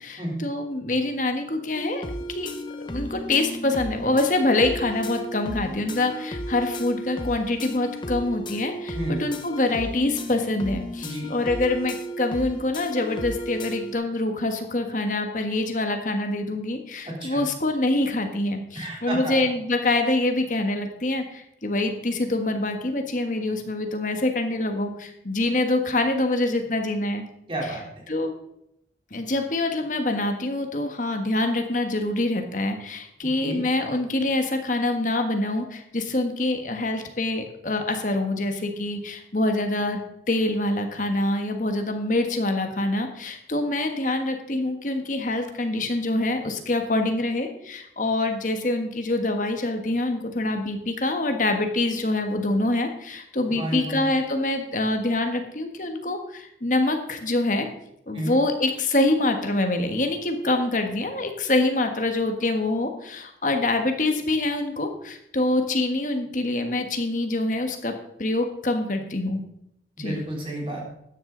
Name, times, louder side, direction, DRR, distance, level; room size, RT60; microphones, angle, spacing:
voice 1, 0.0-2.0 2.3-2.5 2.8-27.2 28.1-28.3 29.1-40.0 40.3-57.7 58.1-67.9 68.2-69.4 70.0-70.2, left 2 dB, 45° left, 5 dB, 1.5 m, -25 dB
sound 1, 1.7-13.9, equal, 25° left, 0.9 m, -34 dB
voice 2, 17.1-17.4 18.8-19.4 27.5-27.8 33.4-33.6 53.5-54.1 58.1-58.4 70.0-70.9, right 1 dB, 30° right, -2 dB, 3.6 m, -31 dB
13.0 x 9.9 x 3.9 m, 0.78 s
head